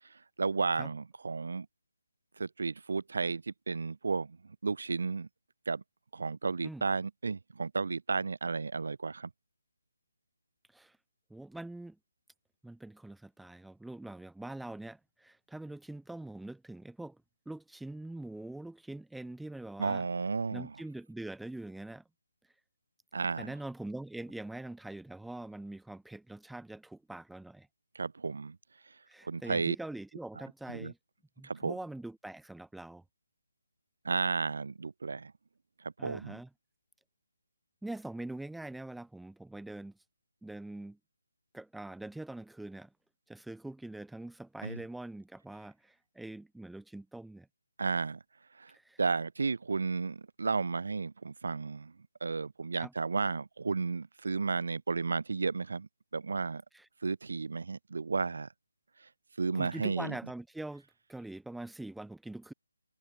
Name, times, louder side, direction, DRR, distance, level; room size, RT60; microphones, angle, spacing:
voice 1, 0.4-1.7 2.4-5.3 5.7-5.8 6.1-9.3 19.8-20.8 23.1-23.5 27.9-28.6 29.2-29.8 30.7-30.9 31.4-31.8 34.0-35.3 35.8-36.4 44.6-44.8 47.8-48.2 48.6-48.7 49.0-51.9 52.2-56.6 57.0-58.5 59.4-60.1, right 4 dB, 65° right, 2.1 m, -33 dB
voice 2, 11.3-12.0 12.6-17.2 17.5-20.0 20.5-22.0 23.4-27.7 29.1-31.0 31.4-33.0 36.0-36.5 37.8-39.9 40.4-41.0 41.5-42.9 43.3-47.5 48.7-49.0 52.7-52.9 56.7-56.9 59.5-62.5, right 2 dB, ahead, 1.0 m, -43 dB
hypercardioid pair, 170°, 0 cm